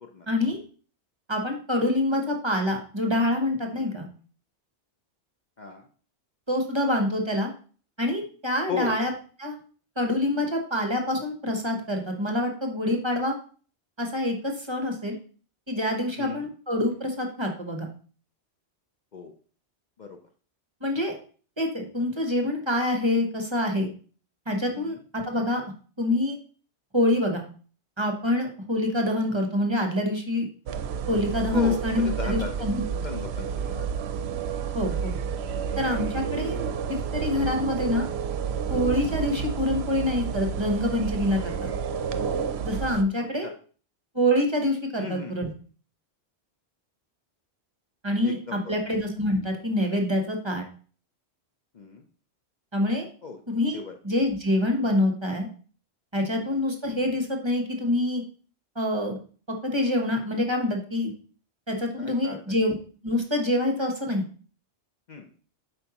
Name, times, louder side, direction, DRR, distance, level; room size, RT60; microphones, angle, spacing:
voice 1, 0.3-0.6 1.3-4.1 6.5-7.5 8.0-9.1 9.4-9.6 10.0-13.3 14.0-15.2 15.7-17.9 20.8-21.2 21.6-23.9 24.5-25.6 26.0-26.4 26.9-27.4 28.0-30.5 31.1-32.8 34.7-35.2 35.8-36.6 37.1-38.1 38.7-41.6 42.6-43.5 44.1-45.5 48.0-50.6 52.7-53.1 53.5-55.5 56.1-58.2 58.8-59.2 59.6-61.1 61.7-62.8 63.0-64.2, left 1 dB, 25° right, 3 dB, 1.0 m, -26 dB
voice 2, 5.6-5.9 8.7-9.0 16.2-16.5 19.1-19.3 20.0-20.2 24.7-25.0 31.5-33.9 35.9-36.1 43.2-43.5 45.0-45.5 48.2-48.7 51.7-52.0 53.2-53.4 53.7-54.0 56.3-56.6 62.0-62.4 65.1-65.3, left 5 dB, 50° left, 3 dB, 0.7 m, -36 dB
sound 1, 30.7-43.0, right 7 dB, 70° right, 0.8 m, -30 dB
7.9 x 5.3 x 2.9 m, 0.41 s
omnidirectional pair, 1.1 m